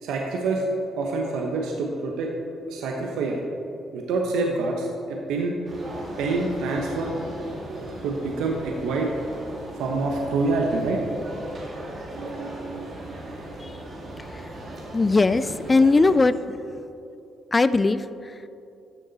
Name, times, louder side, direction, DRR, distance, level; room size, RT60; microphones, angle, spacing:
voice 1, 0.0-0.6 1.0-2.3 2.7-3.4 3.9-5.5 6.2-7.1 8.0-9.1 9.8-11.0, right 3 dB, 90° right, 1 dB, 1.0 m, -26 dB
sound 1, 5.7-16.2, right 1 dB, 45° right, 2.1 m, -37 dB
voice 2, 14.9-16.3 17.5-18.0, left 3 dB, 25° left, 14 dB, 0.4 m, -18 dB
13.0 x 6.7 x 4.1 m, 2.6 s
cardioid pair, 90°, 0 cm